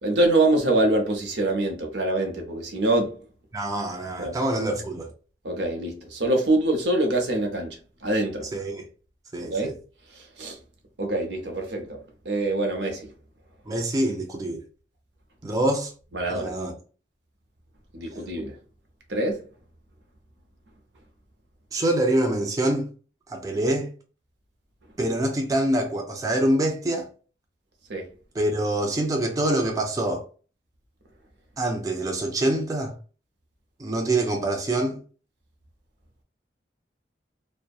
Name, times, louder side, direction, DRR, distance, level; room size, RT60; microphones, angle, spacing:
voice 1, 0.0-3.1 4.2-4.3 5.4-8.4 9.4-9.7 10.1-10.6 11.0-12.0 12.2-13.1 16.1-16.5 17.9-18.5 19.1-19.4 27.9-28.1, right 2 dB, 75° right, 0.7 m, -25 dB
voice 2, 3.5-5.1 8.5-8.9 9.3-9.8 13.7-14.6 15.4-15.9 16.3-16.7 21.7-22.9 23.3-23.9 25.0-27.1 28.4-30.3 31.6-32.9 33.8-35.0, right 1 dB, 20° right, 0.3 m, -25 dB
2.6 x 2.1 x 2.3 m
head